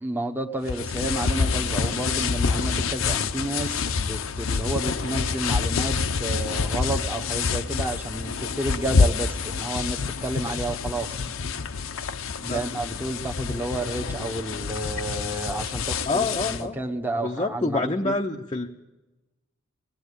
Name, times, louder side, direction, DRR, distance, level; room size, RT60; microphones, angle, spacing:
voice 1, 0.0-11.2 12.4-18.2, right 1 dB, 10° right, 2 dB, 1.2 m, -31 dB
sound 1, 0.7-16.6, left 5 dB, 70° left, 0.8 m, -27 dB
voice 2, 12.4-12.8 16.1-16.8 17.2-18.7, left 3 dB, 25° left, 1 dB, 0.7 m, -27 dB
20.5 x 17.0 x 8.3 m, 1.1 s
head